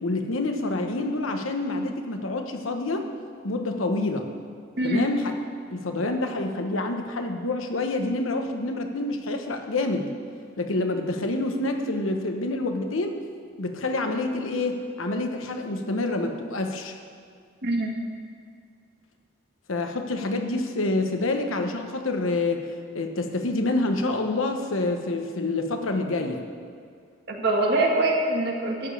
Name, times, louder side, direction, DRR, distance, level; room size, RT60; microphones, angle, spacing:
voice 1, 0.0-3.1 3.4-4.3 4.8-5.3 5.7-10.1 10.6-13.1 13.6-16.9 19.7-22.6 22.9-26.4, left 2 dB, 85° left, 5 dB, 1.1 m, -27 dB
voice 2, 4.8-5.1 17.6-17.9 27.3-28.9, right 2 dB, 55° right, 0 dB, 1.8 m, -24 dB
12.5 x 5.2 x 8.5 m, 2.2 s
head